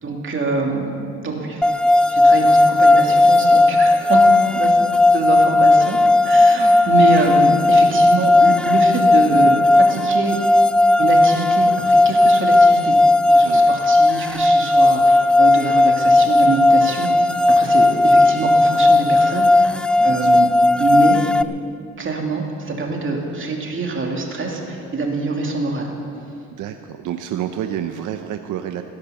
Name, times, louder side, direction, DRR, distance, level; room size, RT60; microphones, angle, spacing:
voice 1, 0.0-0.9 1.2-1.7 2.0-4.2 4.5-4.8 5.1-6.0 6.2-10.4 11.0-13.0 13.3-17.3 17.5-19.7 20.0-20.5 20.8-21.2 22.0-25.9, right 3 dB, 40° right, 1 dB, 2.9 m, -24 dB
sound 1, 1.6-21.4, left 2 dB, 5° left, 0.5 m, -15 dB
voice 2, 13.4-13.8 20.0-20.4 26.6-28.8, right 10 dB, 85° right, 7 dB, 0.7 m, -29 dB
17.5 x 10.5 x 7.1 m, 2.5 s
cardioid pair, 90°, 30 cm